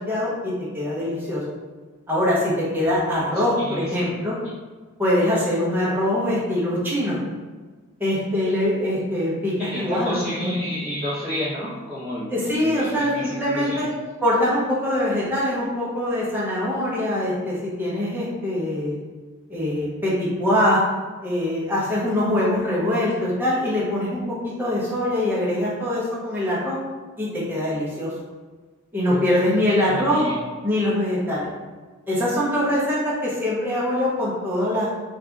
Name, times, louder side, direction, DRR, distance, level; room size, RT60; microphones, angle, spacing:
voice 1, 0.0-1.4 2.1-4.3 5.0-7.1 8.0-10.5 12.3-13.9 14.2-19.0 19.5-20.8 21.2-26.8 27.2-28.1 28.9-30.3 30.6-31.5 32.1-34.9, left 1 dB, 10° right, -7 dB, 0.7 m, -23 dB
voice 2, 3.6-4.1 9.6-13.8 29.1-29.3 29.9-30.4, equal, 15° left, -16 dB, 1.0 m, -31 dB
2.7 x 2.4 x 3.5 m, 1.4 s
head